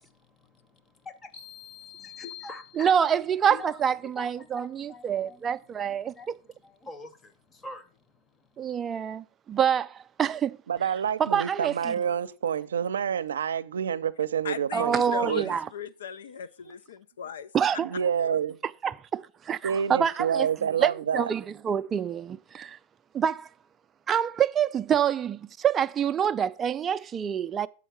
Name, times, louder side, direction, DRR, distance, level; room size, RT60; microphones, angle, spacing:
voice 1, 0.4-1.7 2.2-2.9 3.5-8.9, left 2 dB, 15° left, 0.9 m, -46 dB
sound 1, 1.3-3.3, left 10 dB, 65° left, 4.1 m, -46 dB
voice 2, 2.8-6.1 8.6-10.6 11.2-11.9 14.7-15.7 17.5-17.9 18.6-20.5 20.8-22.8 23.1-23.5 24.1-27.7, right 8 dB, 25° right, 0.3 m, -26 dB
voice 3, 10.7-15.5 17.8-18.5 19.6-21.3, right 8 dB, 90° right, 0.5 m, -28 dB
voice 4, 14.4-17.5 18.2-18.4, left 8 dB, 85° left, 0.5 m, -38 dB
7.1 x 4.6 x 6.1 m
hypercardioid pair, 125°, 0 cm